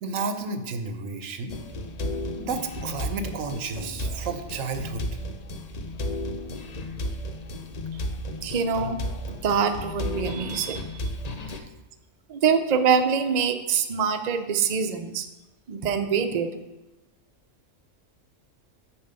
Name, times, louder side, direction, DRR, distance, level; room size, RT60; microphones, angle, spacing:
voice 1, 0.0-1.6 2.4-5.1, right 4 dB, 90° right, 8 dB, 1.2 m, -32 dB
sound 1, 1.5-11.6, left 1 dB, 45° left, 0.5 m, -33 dB
voice 2, 8.4-9.0 9.4-11.1 12.3-15.3 15.7-16.5, right 6 dB, 45° right, 7 dB, 0.6 m, -24 dB
6.9 x 4.7 x 6.8 m, 1.0 s
omnidirectional pair, 1.3 m